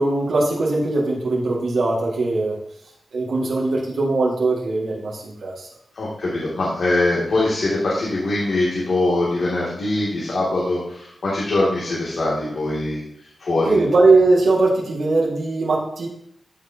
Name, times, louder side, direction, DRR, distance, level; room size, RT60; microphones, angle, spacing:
voice 1, 0.0-2.5 3.1-5.7 13.7-16.1, right 3 dB, 85° right, -5 dB, 2.1 m, -20 dB
voice 2, 5.9-13.0 13.4-13.8, left 2 dB, 70° left, -7 dB, 2.5 m, -22 dB
14.5 x 6.4 x 2.9 m, 0.72 s
wide cardioid pair, 85°, 0 cm